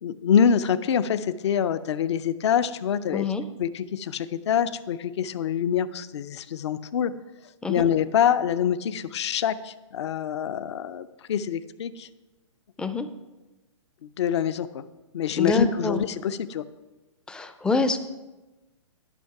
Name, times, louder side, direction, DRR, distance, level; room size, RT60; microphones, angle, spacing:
voice 1, 0.0-3.3 3.6-7.1 7.7-12.1 14.0-14.8 15.1-16.6, left 8 dB, 55° left, 14 dB, 0.5 m, -25 dB
voice 2, 3.1-3.4 7.6-7.9 12.8-13.1 15.4-16.0 17.3-18.0, left 4 dB, 5° left, 10 dB, 0.4 m, -26 dB
11.5 x 5.7 x 4.7 m, 1.1 s
hypercardioid pair, 125°, 17 cm